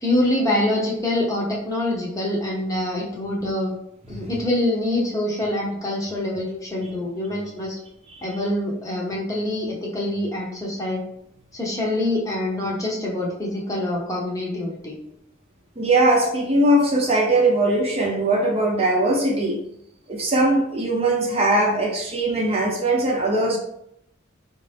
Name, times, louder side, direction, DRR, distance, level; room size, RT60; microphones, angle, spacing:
voice 1, 0.0-3.7 4.1-7.8 8.2-11.0 11.5-15.0, left 1 dB, 15° left, -3 dB, 0.9 m, -25 dB
voice 2, 15.8-19.6 20.1-23.6, right 1 dB, 30° right, 0 dB, 0.7 m, -20 dB
4.6 x 2.6 x 3.4 m, 0.76 s
head